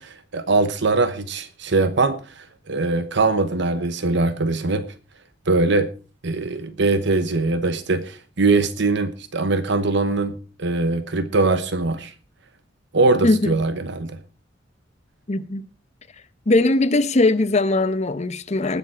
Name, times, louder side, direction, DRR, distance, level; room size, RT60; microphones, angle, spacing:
voice 1, 0.0-4.8 5.5-5.9 6.2-10.3 10.6-12.1 12.9-14.2, right 3 dB, 65° right, 1.0 m, -22 dB
voice 2, 13.2-13.5 15.3-15.7 16.5-18.8, left 2 dB, 35° left, 0.8 m, -20 dB
20.0 x 7.0 x 4.5 m
head